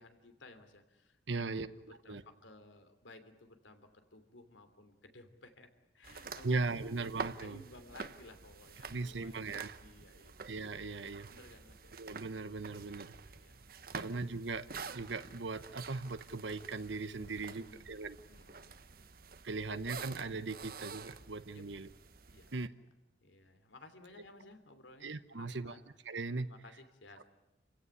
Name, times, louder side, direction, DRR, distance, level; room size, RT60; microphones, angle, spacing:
voice 1, 0.0-5.7 5.9-7.0 7.4-9.4 9.8-10.3 11.3-11.9 13.2-13.6 13.9-14.2 17.2-17.9 18.3-19.1 21.5-21.6 22.3-22.7 23.2-25.8 26.4-27.2, left 2 dB, 90° left, 9 dB, 3.1 m, -57 dB
voice 2, 1.3-2.2 6.4-7.6 8.9-9.7 10.4-11.3 12.0-13.2 13.9-18.2 19.4-21.9 22.5-22.7 25.0-25.7 26.0-26.5, right 3 dB, 75° right, 11 dB, 1.0 m, -39 dB
sound 1, 6.0-22.7, right 5 dB, 50° right, 1.0 m, -49 dB
29.0 x 16.5 x 9.9 m, 1.0 s
head